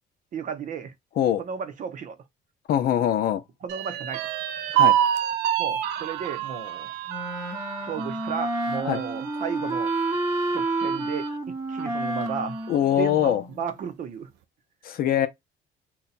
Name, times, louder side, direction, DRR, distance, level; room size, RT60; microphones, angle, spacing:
voice 1, 0.3-0.9 1.4-2.2 3.6-4.2 5.6-6.9 7.8-9.9 10.5-12.6 13.0-14.3, right 7 dB, 50° right, 0.7 m, -34 dB
voice 2, 2.7-3.4 4.7-5.0 8.8-9.0 12.7-13.4 14.8-15.3, left 10 dB, 60° left, 0.6 m, -22 dB
sound 1, 3.7-11.3 11.8-11.9 12.3-12.9, right 11 dB, 85° right, 0.4 m, -28 dB
Wind instrument woodwind instrument, 7.1-13.7, right 2 dB, 20° right, 0.8 m, -30 dB
2.7 x 2.3 x 4.0 m
cardioid pair, 110°, 17 cm